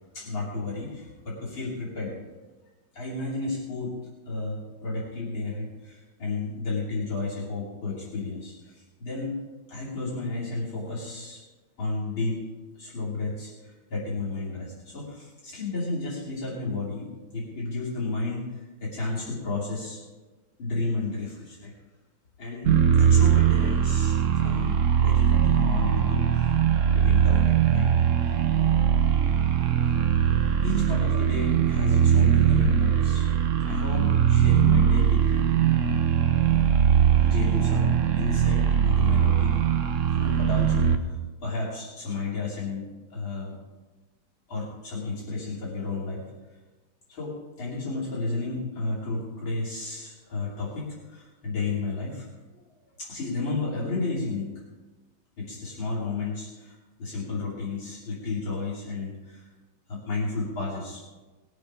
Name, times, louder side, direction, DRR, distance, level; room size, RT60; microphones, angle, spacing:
voice 1, 0.1-2.2 2.9-4.0 4.3-9.4 9.7-11.4 11.8-12.4 12.7-20.0 20.6-21.7 22.4-26.6 26.9-27.9 30.6-33.3 33.6-35.5 37.2-39.6 40.1-43.6 44.5-46.2 47.1-52.3 53.0-54.5 55.4-59.4 59.9-61.0, left 3 dB, 65° left, -6 dB, 3.7 m, -32 dB
sound 1, 22.6-41.0, right 8 dB, 65° right, 0.8 m, -21 dB
19.5 x 8.0 x 4.9 m, 1.2 s
omnidirectional pair, 2.3 m